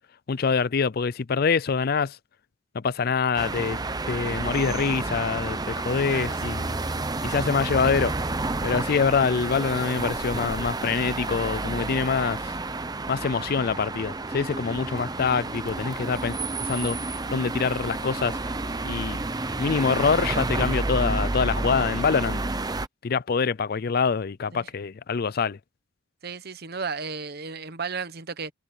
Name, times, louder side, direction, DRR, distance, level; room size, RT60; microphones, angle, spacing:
voice 1, 0.3-2.2 2.7-6.8 7.2-8.1 8.6-12.4 13.1-18.4 18.9-19.2 19.6-22.4 23.0-25.6, left 5 dB, 50° left, 0.4 m, -25 dB
sound 1, 3.4-22.9, right 2 dB, 20° right, 0.7 m, -30 dB
voice 2, 6.1-6.6 24.5-24.7 26.2-28.5, right 5 dB, 50° right, 1.0 m, -34 dB
head